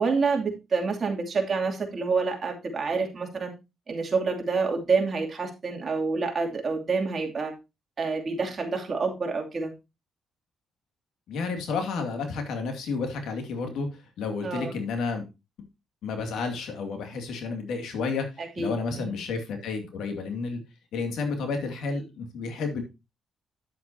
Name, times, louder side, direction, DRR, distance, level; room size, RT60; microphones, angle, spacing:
voice 1, 0.0-3.5 3.9-7.5 8.0-9.7 14.4-14.7 18.4-19.2, right 4 dB, 40° right, 1 dB, 2.7 m, -28 dB
voice 2, 11.3-13.9 14.2-15.3 16.0-18.3 18.6-20.6 20.9-22.8, left 4 dB, 80° left, 5 dB, 2.4 m, -31 dB
9.9 x 8.2 x 2.8 m, 0.25 s
cardioid pair, 90°, 0 cm